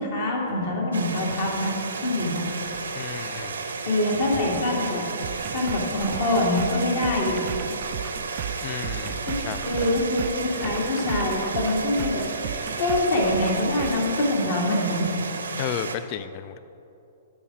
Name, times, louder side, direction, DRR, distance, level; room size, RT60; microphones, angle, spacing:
voice 1, 0.0-1.7 2.0-2.4 3.9-5.0 5.4-7.4 9.2-9.4 9.6-15.1, left 1 dB, 55° left, -2 dB, 2.1 m, -25 dB
sound 1, 0.9-16.0, right 4 dB, 70° right, 0.7 m, -33 dB
voice 2, 2.9-3.6 8.6-9.2 9.5-10.0 15.6-16.6, left 11 dB, 40° left, 13 dB, 0.3 m, -33 dB
sound 2, 5.2-14.1, right 9 dB, 40° right, 0.4 m, -36 dB
10.0 x 4.8 x 6.0 m, 2.7 s
figure-of-eight pair, 115°, 0 cm